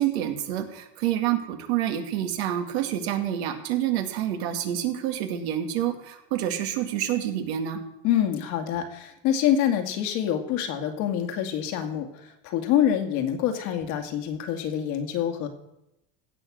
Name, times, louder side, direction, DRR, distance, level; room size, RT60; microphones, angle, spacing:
voice 1, 0.0-7.8, right 11 dB, 80° right, 5 dB, 2.2 m, -27 dB
voice 2, 8.0-12.1 12.4-15.5, left 10 dB, 70° left, 6 dB, 2.3 m, -26 dB
16.0 x 7.3 x 6.3 m, 0.86 s
supercardioid pair, 100°, 31 cm